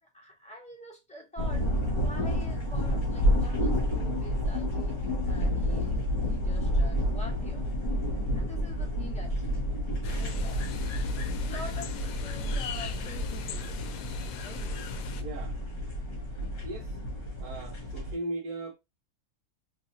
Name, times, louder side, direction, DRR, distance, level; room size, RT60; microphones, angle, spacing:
voice 1, 0.0-4.9 5.2-7.6 8.3-9.7 10.1-10.7 11.4-14.0 14.4-14.7, left 1 dB, 5° left, 1.4 m, -46 dB
sound 1, 1.4-18.1, equal, 40° left, 1.7 m, -30 dB
sound 2, 10.0-15.2, left 8 dB, 75° left, 1.0 m, -40 dB
voice 2, 15.2-15.6 16.3-17.0 17.4-18.7, right 2 dB, 75° right, 1.3 m, -38 dB
4.0 x 3.3 x 2.9 m
omnidirectional pair, 1.6 m